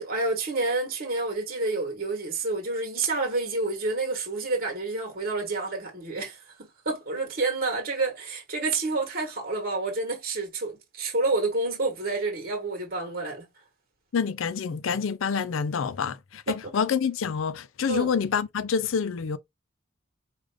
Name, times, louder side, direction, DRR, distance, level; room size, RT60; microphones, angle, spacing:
voice 1, 0.0-13.5 16.5-16.6 17.9-18.1, right 3 dB, 50° right, 1.3 m, -29 dB
voice 2, 14.1-19.4, left 6 dB, 70° left, 0.4 m, -27 dB
4.9 x 2.5 x 3.4 m
head